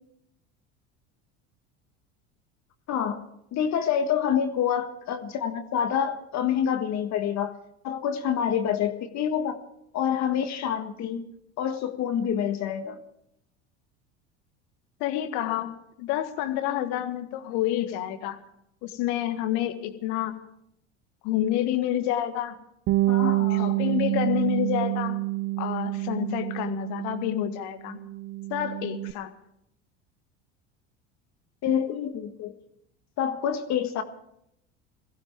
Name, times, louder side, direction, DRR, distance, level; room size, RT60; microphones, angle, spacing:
voice 1, 2.9-7.5 7.8-9.6 9.9-11.3 11.6-13.0 23.1-23.7 31.6-32.5 33.2-34.0, left 8 dB, 50° left, 8 dB, 1.6 m, -27 dB
voice 2, 15.0-18.4 18.8-20.4 21.2-22.6 23.5-25.2 25.6-28.0 28.5-29.3, left 12 dB, 65° left, 9 dB, 1.7 m, -28 dB
Bass guitar, 22.9-27.6 27.9-29.1, right 18 dB, 40° right, 0.6 m, -27 dB
22.5 x 15.5 x 3.6 m, 0.77 s
hypercardioid pair, 80°, 36 cm